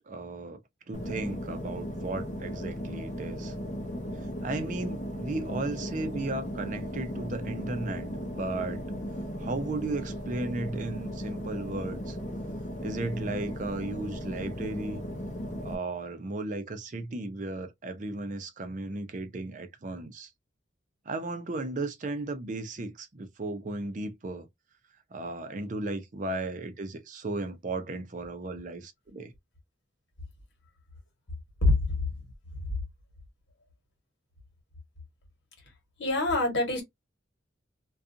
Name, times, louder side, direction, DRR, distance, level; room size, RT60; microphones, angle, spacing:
voice 1, 0.1-0.6 0.9-3.5 4.4-8.1 8.3-8.8 9.4-12.2 12.8-15.0 15.6-20.3 21.1-24.5 25.1-29.3, right 2 dB, 40° right, 0.5 m, -35 dB
sound 1, 0.9-15.8, equal, 40° left, 0.6 m, -36 dB
voice 2, 31.6-32.0 36.0-36.8, left 2 dB, 65° left, 1.2 m, -24 dB
2.5 x 2.3 x 2.6 m
head